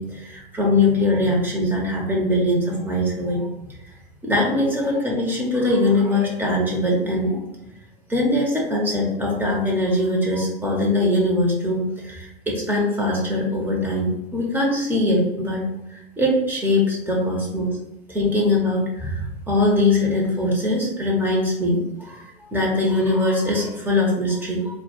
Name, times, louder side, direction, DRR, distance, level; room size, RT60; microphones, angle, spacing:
voice 1, 0.0-3.5 4.2-7.4 8.1-15.6 15.9-17.7 18.1-24.8, left 1 dB, 5° right, -2 dB, 0.9 m, -22 dB
4.4 x 2.2 x 4.4 m, 0.89 s
figure-of-eight pair, 100°, 31 cm